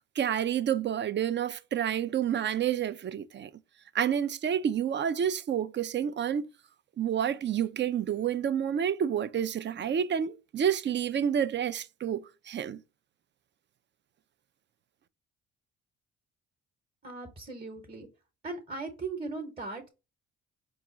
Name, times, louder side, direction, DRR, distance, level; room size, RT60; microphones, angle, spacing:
voice 1, 0.2-3.5 3.9-6.5 7.0-12.8, right 9 dB, 40° right, 0.4 m, -29 dB
voice 2, 17.0-18.1 18.4-19.9, right 3 dB, 20° right, 1.0 m, -38 dB
4.8 x 2.4 x 3.9 m
cardioid pair, 90°, 30 cm